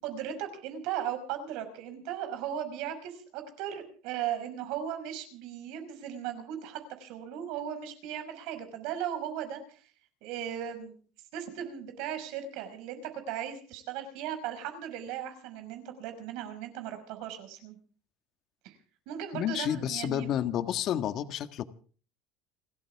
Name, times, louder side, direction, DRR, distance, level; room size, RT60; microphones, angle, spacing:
voice 1, 0.0-9.8 10.2-11.0 11.3-17.8 18.6-18.8 19.1-20.6, right 10 dB, 70° right, 8 dB, 5.6 m, -37 dB
voice 2, 19.3-21.6, left 10 dB, 50° left, 10 dB, 1.6 m, -30 dB
29.0 x 13.5 x 3.6 m, 0.41 s
cardioid pair, 135°, 0 cm